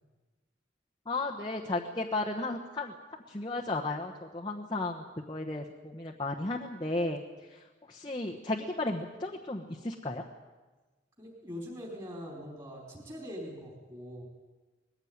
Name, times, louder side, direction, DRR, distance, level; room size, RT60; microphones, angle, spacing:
voice 1, 1.1-3.0 3.3-7.2 7.5-10.2, left 2 dB, 25° left, -2 dB, 1.1 m, -34 dB
voice 2, 11.2-14.3, equal, 20° right, -2 dB, 4.4 m, -42 dB
20.5 x 15.5 x 9.5 m, 1.3 s
head